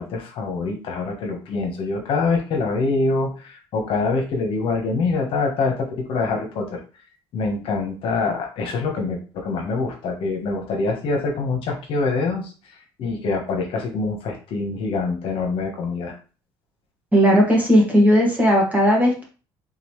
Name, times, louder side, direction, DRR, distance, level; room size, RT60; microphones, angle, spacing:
voice 1, 0.0-6.8 7.3-12.5 13.0-16.2, left 3 dB, 60° left, 2 dB, 1.2 m, -25 dB
voice 2, 17.1-19.2, equal, 15° right, -2 dB, 1.7 m, -16 dB
4.0 x 3.8 x 3.1 m, 0.35 s
cardioid pair, 130°, 10 cm